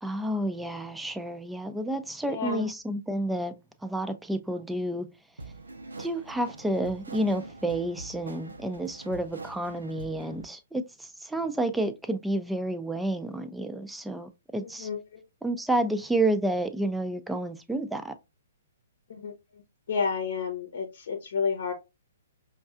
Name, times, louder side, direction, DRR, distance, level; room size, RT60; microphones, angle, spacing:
voice 1, 0.0-3.5 3.8-5.1 6.0-14.9 15.4-18.1, right 1 dB, 5° right, 0.4 m, -30 dB
voice 2, 2.3-2.7 14.6-15.2 19.1-19.6 19.9-21.7, left 5 dB, 65° left, 0.8 m, -31 dB
sound 1, 5.4-10.5, right 3 dB, 85° right, 0.6 m, -43 dB
5.2 x 2.3 x 2.4 m
figure-of-eight pair, 125°, 0 cm